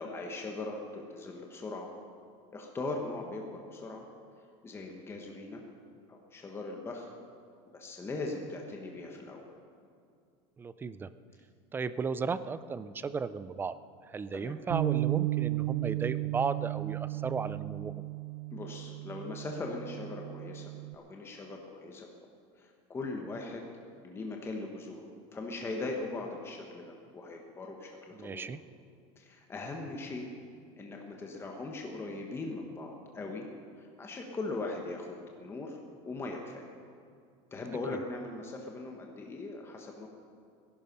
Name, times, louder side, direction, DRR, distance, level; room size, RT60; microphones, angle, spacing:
voice 1, 0.0-1.9 2.5-4.0 4.6-5.6 6.1-7.1 7.7-9.5 14.3-14.6 18.5-22.1 22.6-23.7 24.0-28.5 29.2-30.2 30.8-33.5 33.8-36.7 37.5-40.1, left 2 dB, 15° left, 1 dB, 1.3 m, -40 dB
voice 2, 10.6-11.1 11.7-13.7 14.0-18.0 28.1-28.6 37.9-38.0, right 5 dB, 15° right, 14 dB, 0.4 m, -35 dB
Bass guitar, 14.7-21.0, right 20 dB, 85° right, 0.4 m, -34 dB
18.5 x 11.5 x 5.4 m, 2.3 s
cardioid pair, 155°, 16 cm